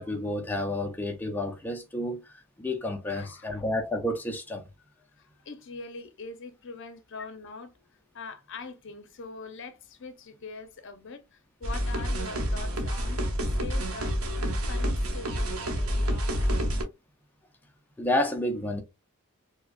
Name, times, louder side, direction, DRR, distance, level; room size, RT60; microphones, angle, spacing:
voice 1, 0.0-2.2 2.6-4.7 18.0-18.8, left 1 dB, 10° left, 0.5 m, -30 dB
voice 2, 3.1-3.6 5.2-7.7 8.1-13.2 13.6-14.2 14.6-16.5, left 4 dB, 60° left, 0.7 m, -43 dB
sound 1, 11.6-16.8, equal, 85° right, 1.0 m, -28 dB
4.7 x 2.1 x 2.4 m
head